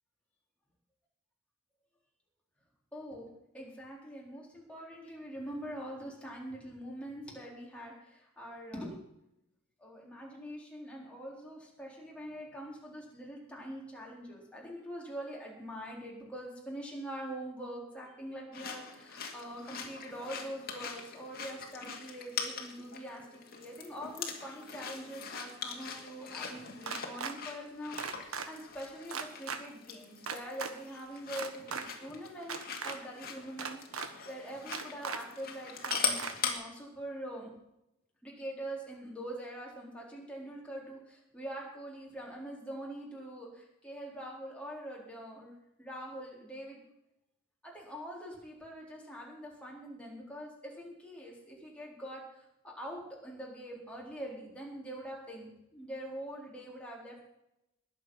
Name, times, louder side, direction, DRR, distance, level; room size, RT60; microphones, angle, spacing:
voice 1, 2.9-9.1 9.8-32.6 32.8-37.5 38.2-45.5 45.8-46.8 47.6-57.2, equal, 5° left, -3 dB, 3.9 m, -44 dB
sound 1, 18.5-36.5, left 6 dB, 45° left, 2.2 m, -41 dB
sound 2, 26.8-27.3 28.0-28.5 29.1-29.6 30.3-30.7 31.3-31.8 32.4-33.0 33.6-34.1 34.7-35.2 35.8-36.3, right 5 dB, 80° right, 1.5 m, -37 dB
20.5 x 7.8 x 5.6 m, 0.84 s
head